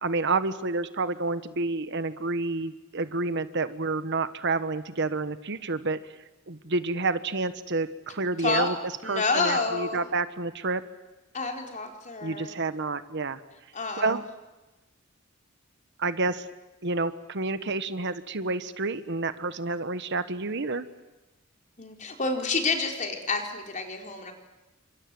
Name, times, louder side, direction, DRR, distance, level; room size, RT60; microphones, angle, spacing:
voice 1, 0.0-6.0 6.5-8.8 9.0-10.8 12.2-13.4 14.0-14.2 16.0-16.5 16.8-20.9, right 3 dB, 60° right, 12 dB, 1.3 m, -29 dB
voice 2, 8.4-8.7 9.0-10.0 11.3-12.5 13.7-14.2 21.8-24.3, left 3 dB, 40° left, 3 dB, 4.3 m, -29 dB
29.0 x 26.0 x 7.8 m, 1.1 s
head